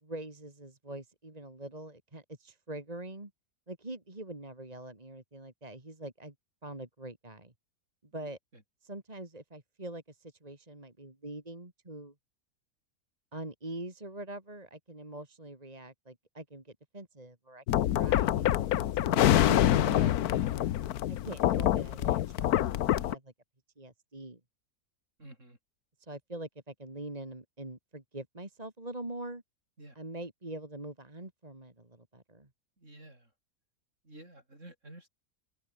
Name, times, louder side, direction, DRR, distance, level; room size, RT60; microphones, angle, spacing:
voice 1, 0.0-3.3 3.7-6.3 6.6-7.5 8.0-8.4 8.8-12.1 13.3-17.6 17.9-20.1 21.1-23.3 23.8-24.4 26.0-29.4 29.9-32.5, right 1 dB, 25° right, 3.1 m, -43 dB
sound 1, 17.7-23.2, left 12 dB, 85° left, 1.3 m, -26 dB
voice 2, 20.1-20.5 25.2-25.6 29.8-30.0 32.8-33.3 34.0-35.1, right 1 dB, 55° right, 8.4 m, -51 dB
open air
omnidirectional pair, 1.6 m